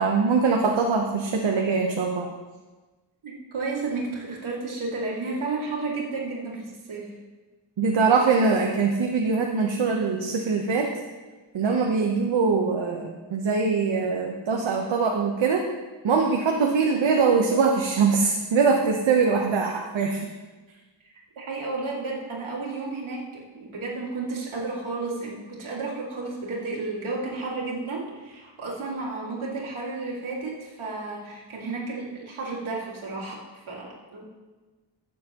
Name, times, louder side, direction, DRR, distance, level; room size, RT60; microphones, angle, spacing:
voice 1, 0.0-2.3 7.8-10.9 11.5-15.6 16.0-20.3, right 4 dB, 70° right, 1 dB, 1.0 m, -22 dB
voice 2, 3.2-7.1 21.0-33.4 33.7-34.2, right 3 dB, 90° right, -5 dB, 2.2 m, -32 dB
15.0 x 6.7 x 2.9 m, 1.3 s
wide cardioid pair, 85°, 47 cm